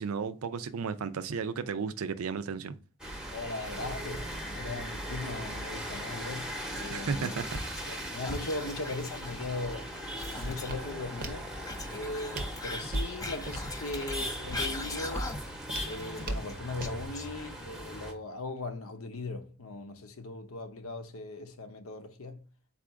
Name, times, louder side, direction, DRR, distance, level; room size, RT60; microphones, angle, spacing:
voice 1, 0.0-2.8 6.9-7.6, right 5 dB, 90° right, 0.4 m, -34 dB
sound 1, 3.0-18.1, equal, 5° right, 0.8 m, -39 dB
voice 2, 3.3-7.3 7.9-9.9 10.4-11.5 11.9-15.4 15.9-22.4, left 2 dB, 80° left, 0.7 m, -39 dB
Whispering, 6.4-8.0 8.2-10.9 11.6-15.6 15.9-17.7, left 2 dB, 15° left, 0.4 m, -41 dB
Walk footsteps, 9.0-17.1, right 1 dB, 45° right, 0.6 m, -41 dB
4.1 x 2.4 x 4.6 m
head